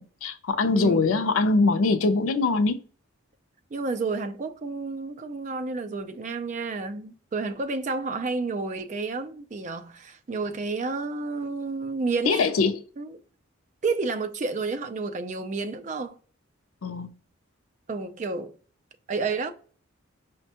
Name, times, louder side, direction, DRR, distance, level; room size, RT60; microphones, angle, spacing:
voice 1, 0.0-2.8 12.3-12.7 16.8-17.1, left 3 dB, 85° left, 0.4 m, -22 dB
voice 2, 3.7-12.5 13.0-13.2 13.8-16.2 17.9-18.5 19.1-19.5, right 3 dB, 35° right, 0.3 m, -30 dB
5.1 x 2.1 x 2.8 m
head